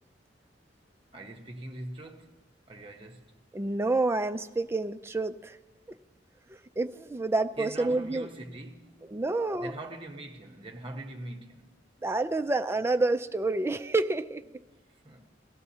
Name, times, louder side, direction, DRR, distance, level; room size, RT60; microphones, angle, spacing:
voice 1, 1.1-2.4 2.7-3.4 7.6-9.1 9.6-11.8 15.0-15.2, right 2 dB, 30° right, 0.9 m, -43 dB
voice 2, 3.5-5.6 6.5-8.3 9.1-9.7 12.0-14.4, right 2 dB, 15° right, 0.3 m, -28 dB
17.5 x 13.0 x 2.8 m
head